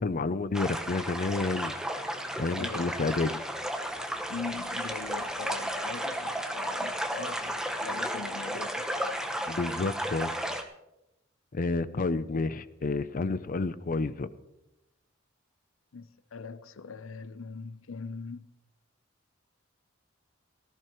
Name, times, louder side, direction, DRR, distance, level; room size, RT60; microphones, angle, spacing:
voice 1, 0.0-1.7 2.1-3.4 9.5-10.3 11.5-14.3, left 3 dB, 45° left, 0.5 m, -30 dB
sound 1, 0.5-10.6, equal, 5° right, 1.0 m, -33 dB
voice 2, 2.6-3.4 4.3-9.1 15.9-18.5, left 5 dB, 85° left, 0.6 m, -41 dB
18.0 x 14.0 x 3.1 m
head